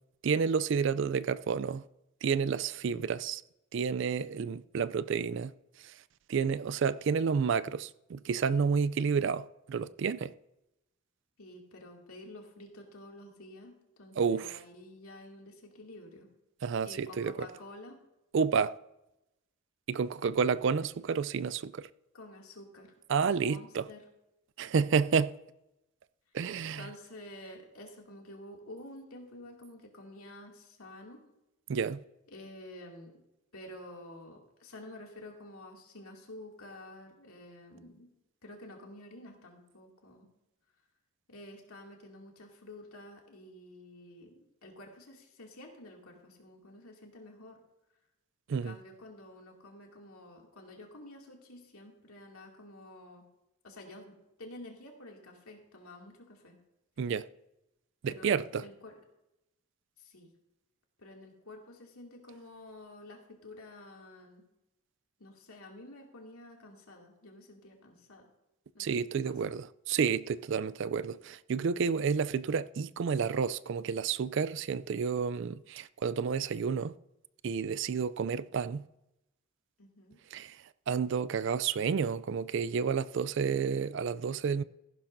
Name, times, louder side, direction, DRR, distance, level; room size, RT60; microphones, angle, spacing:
voice 1, 0.2-1.8 2.2-3.4 3.7-5.5 6.3-10.3 14.2-14.6 16.6-17.5 18.3-18.7 19.9-21.9 23.1-23.9 24.6-25.3 26.3-26.8 31.7-32.0 48.5-48.8 57.0-57.3 58.0-58.6 68.8-76.9 77.4-78.9 80.3-80.5 80.9-84.6, right 6 dB, 55° right, 0.3 m, -30 dB
voice 2, 11.4-16.3 16.8-18.0 22.1-22.9 23.2-24.1 26.8-31.2 32.3-33.2 33.5-38.1 38.4-40.3 41.3-47.6 48.6-53.2 53.6-56.6 58.0-59.0 60.0-60.3 61.0-64.4 65.2-68.3 68.7-69.5 79.8-80.2, left 1 dB, 80° left, 2.4 m, -50 dB
14.5 x 11.5 x 2.6 m
head